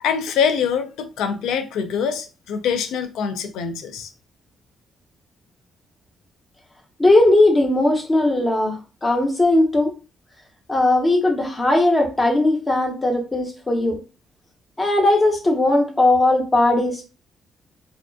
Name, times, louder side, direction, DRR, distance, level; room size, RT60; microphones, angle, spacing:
voice 1, 0.0-4.1, left 7 dB, 85° left, 0.3 m, -24 dB
voice 2, 7.0-9.9 10.7-14.0 14.8-17.0, left 2 dB, 25° left, 0.8 m, -18 dB
2.3 x 2.3 x 2.2 m
cardioid pair, 90°, 0 cm